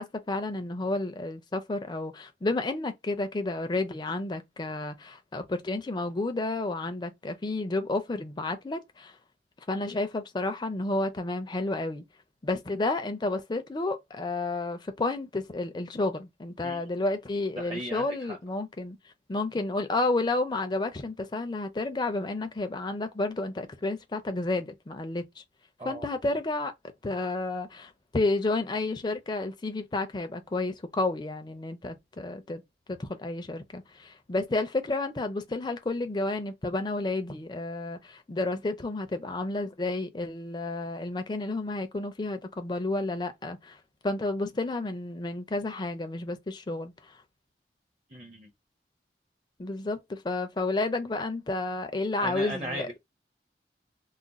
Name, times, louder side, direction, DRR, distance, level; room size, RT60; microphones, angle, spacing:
voice 1, 0.0-9.1 9.7-12.0 12.4-19.0 19.3-25.4 25.8-26.7 27.0-32.6 32.9-43.8 44.0-47.1 49.6-52.9, left 2 dB, 25° left, 0.4 m, -31 dB
voice 2, 17.5-18.4 25.8-26.1 48.1-48.5 52.2-53.0, equal, 30° right, 0.5 m, -37 dB
2.4 x 2.1 x 3.9 m
head